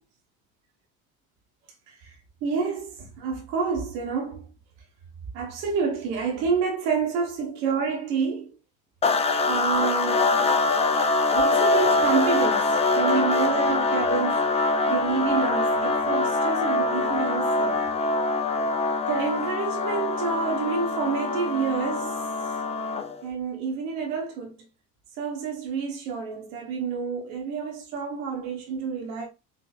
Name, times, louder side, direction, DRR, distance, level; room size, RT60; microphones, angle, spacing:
voice 1, 1.9-4.5 5.3-8.5 9.4-10.6 11.3-17.9 19.1-22.6 23.2-24.6 25.2-29.3, right 5 dB, 70° right, 1.0 m, -29 dB
sound 1, 9.0-23.2, left 3 dB, 15° left, 0.3 m, -24 dB
4.4 x 2.8 x 2.3 m
hypercardioid pair, 65°, 44 cm